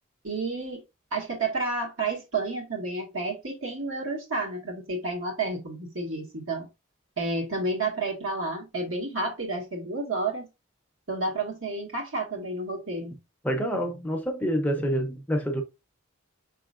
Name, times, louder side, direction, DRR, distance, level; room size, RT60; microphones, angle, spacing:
voice 1, 0.2-0.8 1.1-6.7 7.2-10.5 11.1-13.2, right 3 dB, 75° right, 1.8 m, -30 dB
voice 2, 13.4-15.6, equal, 5° left, 0.6 m, -27 dB
5.4 x 3.6 x 2.4 m
head